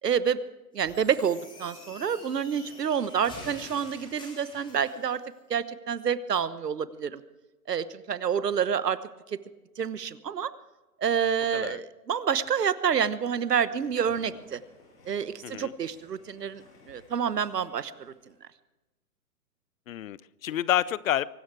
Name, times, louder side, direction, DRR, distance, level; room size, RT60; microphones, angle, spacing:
voice 1, 0.0-0.4 0.7-5.2 5.5-7.2 7.7-9.0 9.8-10.5 11.0-14.6 15.1-18.1, right 7 dB, 85° right, 15 dB, 1.2 m, -28 dB
sound 1, 0.8-5.2, left 2 dB, 10° left, 3.7 m, -47 dB
sound 2, 13.5-18.5, left 2 dB, 80° left, 6.7 m, -57 dB
voice 2, 15.4-15.7 19.9-21.3, left 12 dB, 60° left, 21 dB, 0.7 m, -29 dB
23.5 x 12.5 x 4.8 m, 1.1 s
hypercardioid pair, 130°, 47 cm